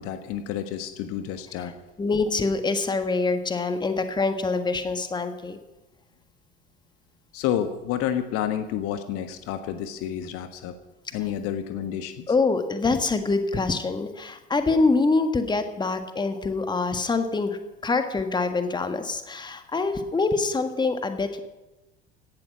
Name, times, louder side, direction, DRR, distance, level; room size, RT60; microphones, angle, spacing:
voice 1, 0.0-1.7 7.3-10.8 11.1-12.3, left 10 dB, 45° left, 9 dB, 1.4 m, -30 dB
voice 2, 2.0-5.6 12.3-21.4, left 3 dB, 15° left, 8 dB, 1.6 m, -25 dB
17.0 x 11.5 x 6.2 m, 1.0 s
figure-of-eight pair, 70°, 31 cm